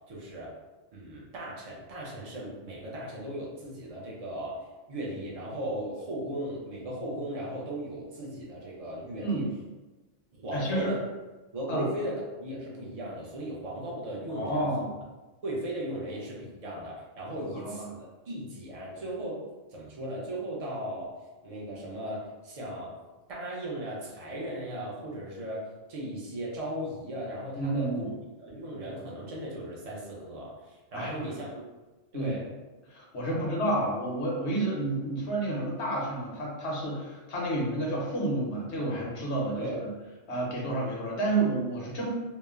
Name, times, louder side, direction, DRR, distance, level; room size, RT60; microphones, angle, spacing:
voice 1, 0.1-0.5 0.9-4.6 4.9-9.4 10.3-11.0 11.5-14.7 15.4-18.0 18.3-19.4 19.7-21.1 21.4-23.0 23.3-25.6 25.9-28.1 28.4-31.6 32.1-32.5 33.3-33.6 39.6-39.8, right 1 dB, 40° right, -4 dB, 0.6 m, -37 dB
voice 2, 10.5-10.9 11.7-11.9 14.3-14.9 17.6-17.9 27.5-28.1 30.9-31.3 32.1-32.3 32.9-39.9 40.3-42.1, right 2 dB, 70° left, -4 dB, 1.0 m, -30 dB
3.0 x 2.1 x 2.3 m, 1.2 s
omnidirectional pair, 1.2 m